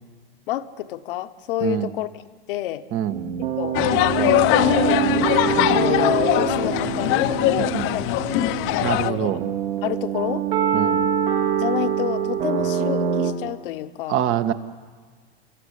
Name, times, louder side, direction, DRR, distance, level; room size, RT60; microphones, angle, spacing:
voice 1, 0.5-2.1 2.5-2.8 3.6-3.8 4.1-5.0 5.7-9.3 9.8-10.4 11.6-14.3, left 13 dB, 60° left, 11 dB, 1.3 m, -29 dB
sound 1, 3.1-13.3, right 9 dB, 70° right, 4.2 m, -25 dB
sound 2, 3.7-9.1, left 15 dB, 45° left, 1.0 m, -21 dB
voice 2, 8.8-9.4 10.7-11.0 14.1-14.5, right 11 dB, 40° right, 10 dB, 1.6 m, -24 dB
29.5 x 13.5 x 10.0 m, 1.6 s
hypercardioid pair, 90°, 30 cm